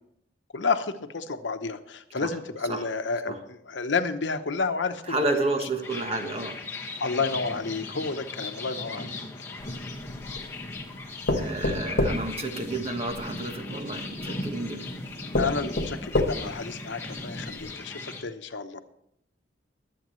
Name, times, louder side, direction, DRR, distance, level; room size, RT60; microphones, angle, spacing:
voice 1, 0.5-5.7 7.0-9.2 15.4-18.8, left 4 dB, 85° left, 8 dB, 0.9 m, -30 dB
voice 2, 5.1-6.6 11.3-14.9, right 2 dB, 35° right, 5 dB, 1.3 m, -30 dB
sound 1, 5.8-18.2, left 2 dB, 15° left, 1.6 m, -38 dB
sound 2, 9.6-10.5 11.3-13.2 14.2-14.3 14.9-15.0 15.3-16.7 17.2-17.3 17.6-17.7, left 1 dB, 65° left, 1.4 m, -28 dB
22.5 x 8.4 x 3.1 m, 0.73 s
head